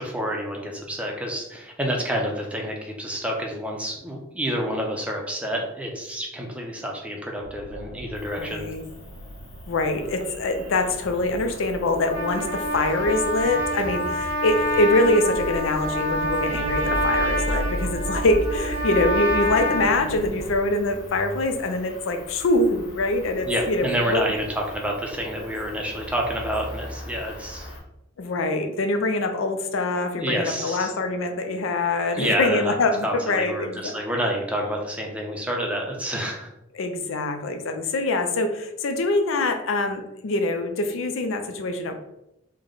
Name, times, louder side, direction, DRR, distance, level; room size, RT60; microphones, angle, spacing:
voice 1, 0.0-8.7 23.5-27.7 30.1-30.9 32.1-32.7 33.0-36.5, equal, 5° right, 0 dB, 0.5 m, -28 dB
sound 1, 7.4-20.5, equal, 75° right, 0.4 m, -36 dB
Cricket, 8.1-27.8, left 1 dB, 65° left, 1.1 m, -43 dB
voice 2, 8.4-8.8 9.7-24.2 28.2-33.9 36.7-42.0, left 2 dB, 85° left, 6 dB, 0.5 m, -24 dB
Trumpet, 11.9-19.9, equal, 25° left, 1.3 m, -27 dB
3.3 x 2.1 x 3.8 m, 0.86 s
head